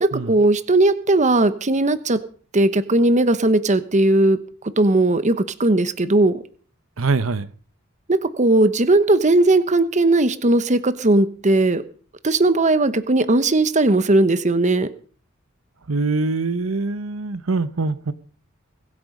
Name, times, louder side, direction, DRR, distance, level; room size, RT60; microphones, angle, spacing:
voice 1, 0.0-2.2 2.5-4.4 4.8-6.4 8.1-11.8 12.2-14.9, right 2 dB, 35° right, 13 dB, 1.0 m, -18 dB
voice 2, 7.0-7.5 15.9-18.1, right 3 dB, 70° right, 13 dB, 0.9 m, -23 dB
22.0 x 8.8 x 5.3 m, 0.43 s
head